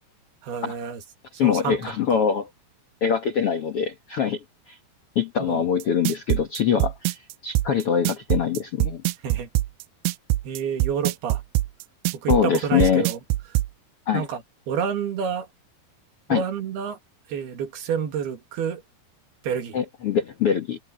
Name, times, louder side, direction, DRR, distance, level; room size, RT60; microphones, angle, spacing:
voice 1, 0.4-1.0 1.4-1.8 5.4-5.6 9.2-9.5 10.4-11.4 12.1-13.2 14.1-14.4 14.7-15.5 16.3-17.0 17.3-18.8 19.4-19.8, right 7 dB, 65° right, 4.1 m, -28 dB
voice 2, 1.4-2.5 3.0-4.4 4.7-4.8 5.1-9.0 12.3-13.1 14.1-14.2 16.3-16.4 19.7-20.8, left 7 dB, 75° left, 1.3 m, -23 dB
sound 1, 5.8-13.7, right 17 dB, 85° right, 2.1 m, -23 dB
omnidirectional pair, 5.0 m